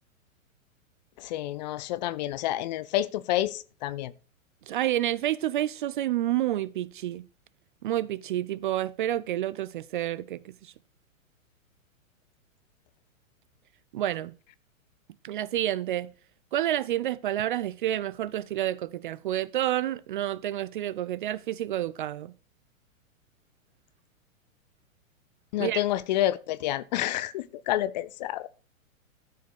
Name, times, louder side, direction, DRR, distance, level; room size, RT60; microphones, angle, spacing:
voice 1, 1.2-4.1 25.5-28.5, left 14 dB, 35° left, 0.5 m, -29 dB
voice 2, 4.7-7.3 7.8-10.7 13.9-14.3 15.2-16.1 16.5-22.3 25.6-25.8, right 13 dB, 40° right, 0.4 m, -29 dB
13.0 x 5.1 x 6.2 m
figure-of-eight pair, 110°, 41 cm